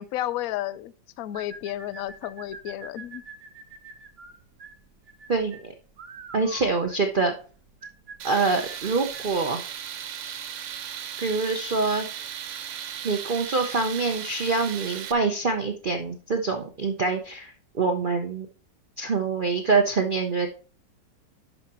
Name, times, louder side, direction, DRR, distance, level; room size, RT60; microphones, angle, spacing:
voice 1, 0.0-3.2, left 13 dB, 75° left, 0.8 m, -32 dB
sound 1, 1.3-9.4, right 5 dB, 45° right, 0.9 m, -45 dB
voice 2, 5.3-5.7 6.3-7.3 8.2-9.6 11.2-12.1 13.0-18.5 19.0-20.5, right 4 dB, 60° right, 0.5 m, -25 dB
Tools, 8.2-15.1, right 9 dB, 90° right, 1.6 m, -36 dB
11.5 x 5.7 x 2.9 m
omnidirectional pair, 1.9 m